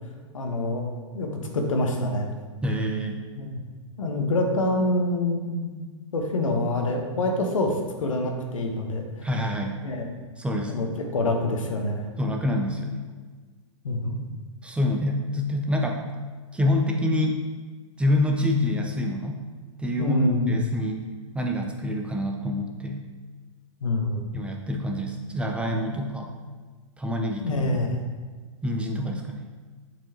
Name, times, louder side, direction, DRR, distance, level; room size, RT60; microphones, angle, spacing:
voice 1, 0.3-2.3 3.4-3.6 4.0-5.8 6.1-9.3 9.8-10.2 10.7-12.1 13.8-14.2 20.0-20.7 23.8-24.3 27.4-28.0, left 2 dB, 85° left, 2 dB, 1.1 m, -26 dB
voice 2, 2.6-3.2 9.2-9.8 10.4-10.8 12.2-13.0 14.6-16.0 16.5-17.4 18.0-19.4 19.8-21.0 21.3-23.0 24.3-26.3 27.0-27.6 28.6-29.4, left 1 dB, 5° right, 1 dB, 0.6 m, -26 dB
7.7 x 4.6 x 2.9 m, 1.4 s
hypercardioid pair, 120°, 16 cm